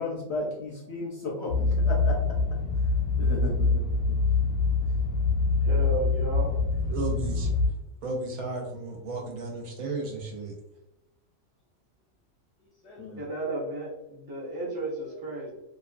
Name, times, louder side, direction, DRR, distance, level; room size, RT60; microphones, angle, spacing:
voice 1, 0.0-2.1 3.2-4.2 12.8-13.2, left 3 dB, 65° left, -2 dB, 0.7 m, -34 dB
sound 1, 1.5-7.7, left 4 dB, 85° left, 1.1 m, -25 dB
voice 2, 5.6-6.7 13.2-15.5, right 2 dB, 30° right, -3 dB, 0.4 m, -33 dB
voice 3, 6.9-7.5 8.0-10.6, right 3 dB, 80° right, 0 dB, 1.1 m, -33 dB
2.8 x 2.3 x 2.4 m, 0.90 s
omnidirectional pair, 1.5 m